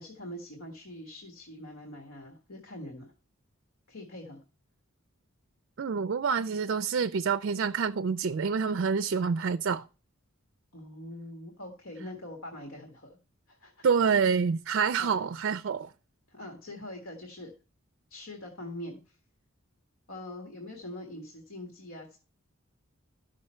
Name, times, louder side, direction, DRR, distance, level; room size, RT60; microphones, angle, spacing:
voice 1, 0.0-3.1 3.9-4.4 10.7-13.2 13.5-13.9 15.0-15.1 16.3-17.5 18.1-19.1 20.1-22.2, left 1 dB, 80° left, 1.7 m, -43 dB
voice 2, 5.8-9.9 13.8-15.9, right 6 dB, 55° right, 0.4 m, -27 dB
13.0 x 6.2 x 4.4 m
head